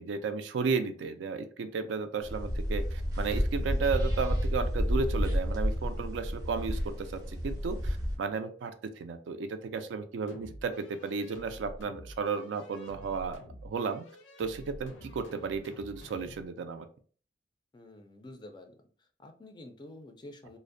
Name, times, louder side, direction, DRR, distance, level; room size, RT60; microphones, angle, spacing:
voice 1, 0.0-14.0 14.4-16.9, right 5 dB, 75° right, 9 dB, 0.3 m, -34 dB
sound 1, 2.2-8.2, equal, 20° right, 0.6 m, -30 dB
sound 2, 10.3-16.5, left 1 dB, 85° left, 0.5 m, -49 dB
voice 2, 17.7-20.6, left 1 dB, 25° left, 5 dB, 0.3 m, -49 dB
2.5 x 2.0 x 2.5 m, 0.43 s
head